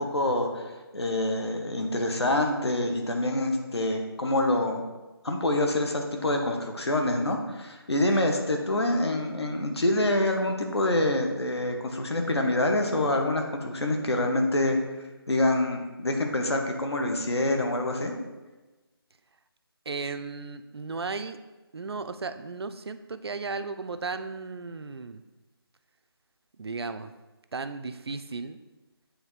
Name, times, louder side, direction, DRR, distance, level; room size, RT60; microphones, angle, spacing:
voice 1, 0.0-4.8 5.2-14.8 15.3-18.2, left 1 dB, 90° left, 3 dB, 1.1 m, -26 dB
voice 2, 19.9-21.4 21.7-25.2 26.6-27.1 27.5-28.6, right 4 dB, 75° right, 10 dB, 0.5 m, -35 dB
8.8 x 3.3 x 3.2 m, 1.2 s
figure-of-eight pair, 170°, 13 cm